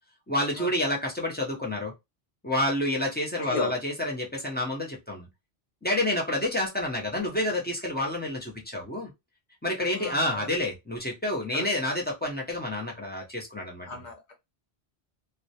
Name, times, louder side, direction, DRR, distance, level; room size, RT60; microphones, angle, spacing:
voice 1, 0.3-1.9 2.4-5.3 5.8-9.1 9.6-13.9, left 1 dB, 15° left, 0.4 m, -29 dB
voice 2, 3.4-3.7 9.9-10.5 11.5-11.7 13.8-14.3, left 3 dB, 50° left, 0.8 m, -34 dB
2.3 x 2.0 x 2.7 m
omnidirectional pair, 1.1 m